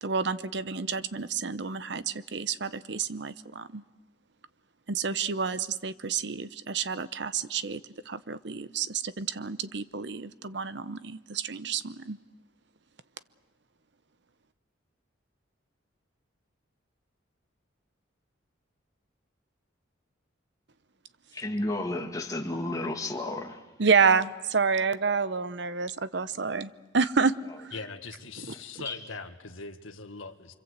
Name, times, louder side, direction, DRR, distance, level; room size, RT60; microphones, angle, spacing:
voice 1, 0.0-3.8 4.9-7.8 8.1-12.2 23.8-27.7, right 5 dB, 60° right, 14 dB, 0.8 m, -29 dB
voice 2, 21.3-23.6 28.8-29.0, left 2 dB, 15° left, 3 dB, 1.9 m, -32 dB
voice 3, 27.7-30.5, left 4 dB, 90° left, 6 dB, 1.8 m, -41 dB
25.5 x 25.5 x 8.1 m, 1.2 s
head